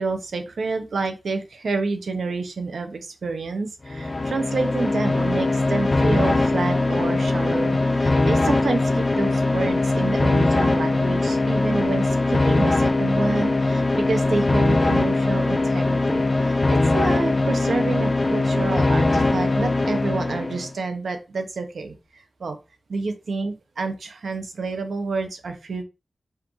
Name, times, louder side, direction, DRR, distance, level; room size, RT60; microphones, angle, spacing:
voice 1, 0.0-16.2 16.7-22.6 22.9-25.8, right 3 dB, 85° right, 7 dB, 0.8 m, -28 dB
sound 1, 3.8-20.7, left 2 dB, 35° left, 0.4 m, -21 dB
5.6 x 2.5 x 3.1 m, 0.28 s
wide cardioid pair, 125°, 0 cm